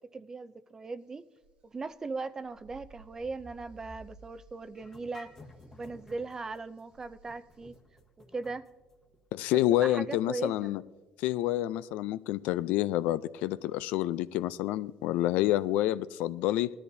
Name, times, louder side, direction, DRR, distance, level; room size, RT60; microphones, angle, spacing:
voice 1, 0.1-1.2 1.6-5.3 5.7-7.8 8.2-8.6 9.8-10.7, right 3 dB, 20° right, 13 dB, 0.5 m, -39 dB
sound 1, 1.4-2.2 2.4-4.9 5.2-6.0 6.9-7.8, right 3 dB, 40° right, 1.2 m, -55 dB
sound 2, 4.7-11.5, left 2 dB, 20° left, 1.2 m, -56 dB
voice 2, 9.3-10.8 11.2-16.7, left 14 dB, 75° left, 16 dB, 0.4 m, -28 dB
18.5 x 13.0 x 2.7 m, 1.2 s
cardioid pair, 120°, 3 cm